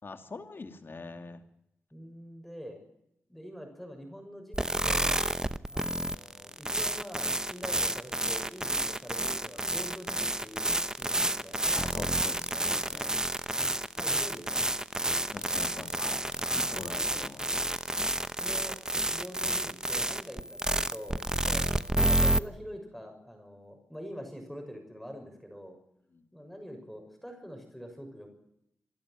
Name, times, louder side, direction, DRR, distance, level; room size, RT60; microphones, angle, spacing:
voice 1, 0.0-1.4 11.7-13.2 15.3-16.2 16.6-17.4 26.1-26.2, left 3 dB, 50° left, 7 dB, 2.6 m, -43 dB
voice 2, 1.9-2.8 3.3-5.2 5.7-11.6 13.9-14.6 16.3-16.5 18.4-25.8 26.3-28.3, equal, 5° left, 4 dB, 6.5 m, -45 dB
sound 1, 4.5-22.4, right 1 dB, 15° right, 0.9 m, -30 dB
26.0 x 12.0 x 9.2 m, 0.79 s
cardioid pair, 60°, 5 cm